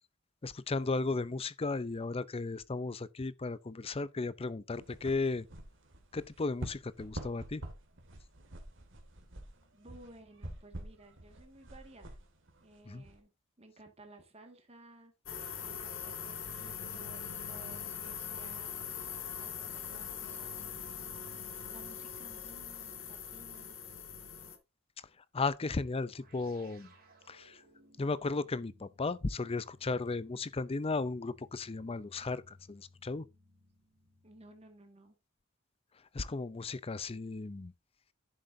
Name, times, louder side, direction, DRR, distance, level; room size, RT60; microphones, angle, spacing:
voice 1, 0.4-5.5 6.1-7.6 12.9-13.0 25.3-26.9 27.3-27.6 28.0-33.2 36.1-37.7, left 3 dB, 30° left, 0.5 m, -35 dB
sound 1, 4.7-13.2, right 1 dB, 65° right, 2.2 m, -47 dB
voice 2, 9.7-12.2 12.6-13.3 13.6-15.1 15.6-18.9 19.3-20.8 21.7-23.8 34.2-35.2, right 2 dB, 30° right, 1.9 m, -56 dB
sound 2, 15.3-24.6, left 7 dB, 65° left, 2.0 m, -42 dB
sound 3, 26.0-34.9, left 1 dB, 50° right, 3.5 m, -63 dB
10.5 x 7.7 x 2.7 m
head